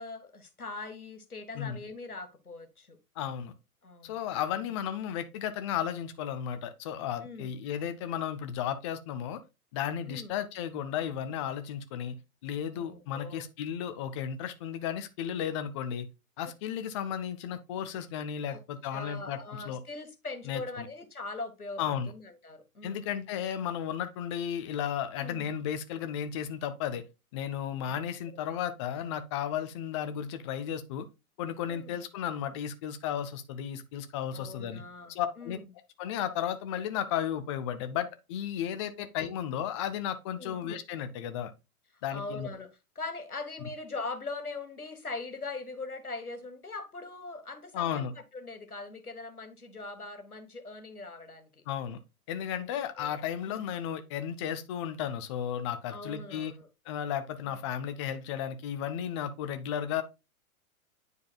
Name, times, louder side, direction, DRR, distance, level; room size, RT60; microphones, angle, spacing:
voice 1, 0.0-3.0 3.8-4.2 4.6-4.7 7.2-7.5 10.1-10.3 12.7-13.5 18.5-18.6 18.9-23.1 25.2-25.5 28.3-28.4 31.6-32.0 34.3-35.7 39.0-39.1 40.4-40.6 42.1-48.1 48.3-51.5 52.5-53.2 53.5-53.6 55.9-56.7 57.4-57.6, left 3 dB, 85° left, 1.2 m, -41 dB
voice 2, 3.2-3.5 4.0-9.4 9.7-12.2 12.4-16.1 16.4-19.4 19.7-19.8 20.5-20.9 21.8-22.1 22.8-27.0 27.3-31.1 31.4-34.8 35.1-35.6 36.0-41.5 42.0-42.5 47.7-48.1 51.7-52.0 52.3-56.5 56.9-60.0, left 9 dB, 25° left, 0.4 m, -34 dB
9.4 x 4.7 x 2.2 m
figure-of-eight pair, 100°, 43 cm